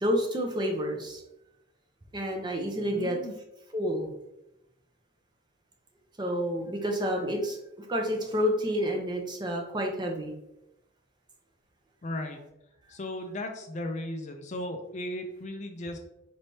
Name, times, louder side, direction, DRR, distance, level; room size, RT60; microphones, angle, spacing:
voice 1, 0.0-1.2 2.1-3.2 3.7-4.1 6.2-10.3, equal, 20° right, 1 dB, 0.5 m, -29 dB
voice 2, 2.9-3.3 12.0-12.4 12.9-16.0, left 1 dB, 35° left, 5 dB, 0.4 m, -36 dB
4.3 x 3.3 x 2.7 m, 0.86 s
head